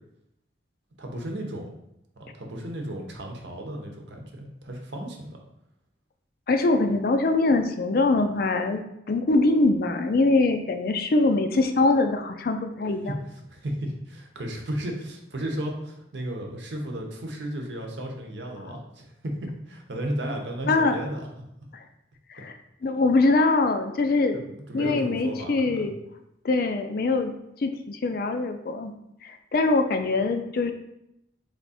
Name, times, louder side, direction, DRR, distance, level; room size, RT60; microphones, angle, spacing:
voice 1, 1.0-1.7 2.2-5.4 13.1-13.2 13.5-21.3 24.3-25.9, right 1 dB, 70° right, 1 dB, 0.8 m, -34 dB
voice 2, 6.5-8.8 9.1-13.1 20.7-21.0 21.7-21.8 22.3-22.5 22.8-24.4 24.7-25.9 26.4-27.3 27.6-28.9 29.2-30.7, left 3 dB, 50° left, 7 dB, 0.4 m, -23 dB
3.6 x 3.3 x 4.1 m, 0.82 s
head